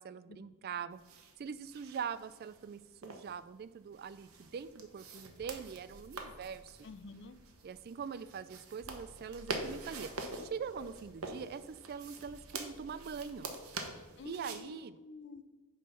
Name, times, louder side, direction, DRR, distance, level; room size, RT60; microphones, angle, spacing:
voice 1, 0.0-6.8 7.6-13.5 14.2-15.0, right 6 dB, 45° right, 14 dB, 0.3 m, -43 dB
sound 1, 0.9-14.6, right 3 dB, 85° right, 1.1 m, -46 dB
sound 2, 5.1-14.2, equal, 15° right, 1.4 m, -59 dB
voice 2, 6.8-7.4 14.2-15.4, left 4 dB, 55° left, 13 dB, 0.5 m, -49 dB
9.3 x 3.7 x 6.6 m, 1.2 s
head